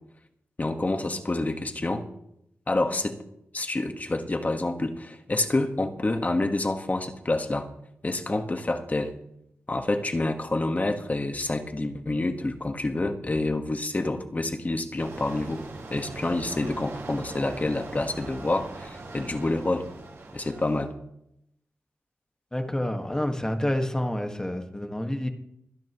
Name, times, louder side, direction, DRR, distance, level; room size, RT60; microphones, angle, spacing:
voice 1, 0.6-2.1 2.7-3.2 3.5-7.7 8.0-9.1 9.7-15.6 15.9-19.9 20.3-20.9, left 2 dB, 35° left, 6 dB, 1.5 m, -28 dB
sound 1, 15.0-20.8, right 2 dB, 80° right, 5.7 m, -41 dB
voice 2, 22.5-25.3, left 1 dB, 15° left, 5 dB, 1.7 m, -28 dB
26.0 x 10.5 x 3.1 m, 0.79 s
wide cardioid pair, 75°, 5 cm